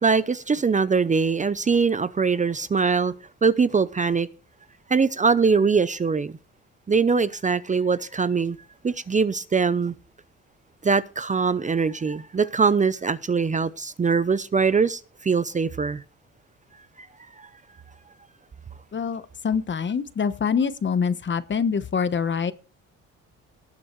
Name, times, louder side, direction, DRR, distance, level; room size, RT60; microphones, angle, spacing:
voice 1, 0.0-3.1 3.4-4.3 4.9-6.3 6.9-8.6 8.8-9.9 10.8-16.0 17.0-17.1 17.4-17.5, right 5 dB, 25° right, 0.6 m, -22 dB
voice 2, 18.9-22.5, left 6 dB, 40° left, 1.1 m, -25 dB
18.5 x 7.7 x 3.2 m
cardioid pair, 90°, 30 cm